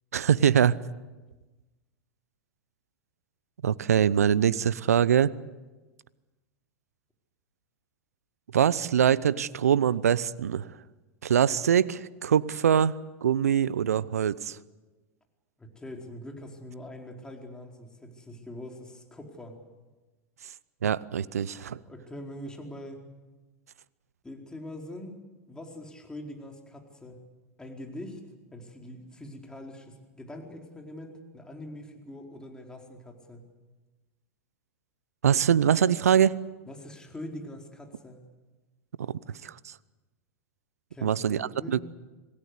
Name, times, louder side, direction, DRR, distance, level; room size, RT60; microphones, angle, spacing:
voice 1, 0.1-0.8 3.6-5.3 8.5-10.7 11.2-13.0 13.2-14.6 20.8-21.8 35.2-36.4 39.0-39.1 39.4-39.7 41.0-41.8, right 8 dB, 80° right, 20 dB, 0.7 m, -23 dB
voice 2, 15.6-19.6 21.9-23.1 24.2-25.2 25.5-27.2 27.6-28.2 28.5-33.4 36.7-38.3 40.9-41.8, left 1 dB, 10° left, 2 dB, 4.6 m, -43 dB
26.5 x 18.5 x 8.3 m, 1.2 s
hypercardioid pair, 95°, 8 cm